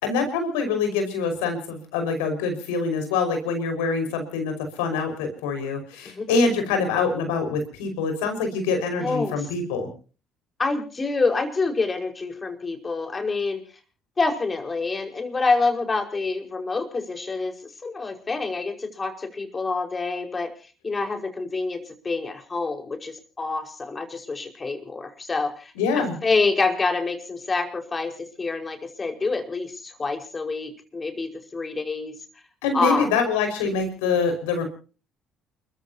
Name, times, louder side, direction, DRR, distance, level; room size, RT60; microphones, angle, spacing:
voice 1, 0.0-9.9 25.8-26.2 32.6-34.7, left 4 dB, 85° left, 6 dB, 5.4 m, -25 dB
voice 2, 9.0-9.4 10.6-13.6 14.2-17.5 17.8-20.5 20.8-21.8 22.0-32.1 32.7-33.1, left 3 dB, 30° left, 4 dB, 5.2 m, -27 dB
29.0 x 15.0 x 2.9 m, 0.38 s
hypercardioid pair, 60°, 0 cm